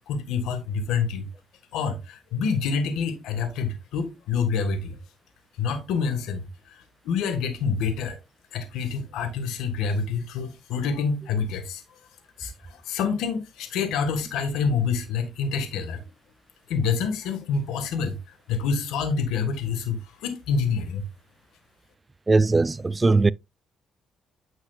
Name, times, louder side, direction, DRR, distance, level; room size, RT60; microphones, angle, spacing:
voice 1, 0.1-1.3 1.7-5.0 5.6-8.2 8.5-11.8 12.4-16.0 16.7-18.2 18.5-21.1, left 5 dB, 90° left, 1.7 m, -27 dB
voice 2, 22.3-23.3, right 3 dB, 25° right, 0.3 m, -19 dB
9.4 x 6.3 x 2.4 m
cardioid pair, 90°, 0 cm